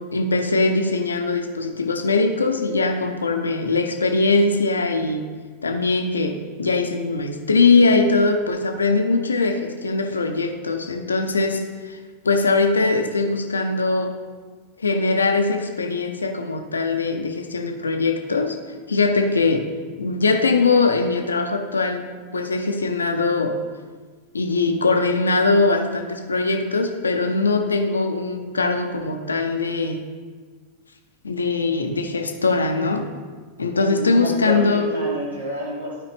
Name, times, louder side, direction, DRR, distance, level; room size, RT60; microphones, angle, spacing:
voice 1, 0.1-5.3 5.6-12.0 12.2-14.2 14.8-18.6 18.9-19.7 20.0-22.1 22.3-23.5 24.3-30.0 31.2-33.1 33.6-34.9, left 3 dB, 75° left, 5 dB, 0.7 m, -21 dB
voice 2, 33.7-36.0, right 1 dB, 75° right, -4 dB, 2.4 m, -29 dB
12.0 x 4.9 x 3.4 m, 1.5 s
figure-of-eight pair, 90°, 0 cm